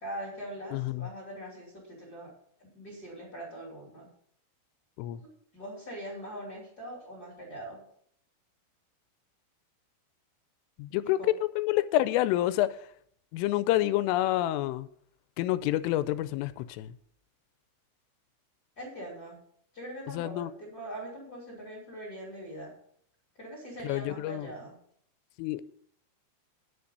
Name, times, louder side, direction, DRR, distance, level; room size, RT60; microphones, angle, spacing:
voice 1, 0.0-2.3 2.6-4.1 5.2-7.8 11.2-11.3 18.8-19.4 19.7-22.7 23.4-24.7, right 1 dB, 25° left, 2.5 m, -42 dB
voice 2, 0.7-1.1 5.0-5.2 10.8-12.8 13.3-14.9 15.4-16.9 20.1-20.5 23.8-24.5 25.4-25.6, left 14 dB, 85° left, 3.1 m, -28 dB
10.0 x 5.2 x 8.1 m
omnidirectional pair, 5.7 m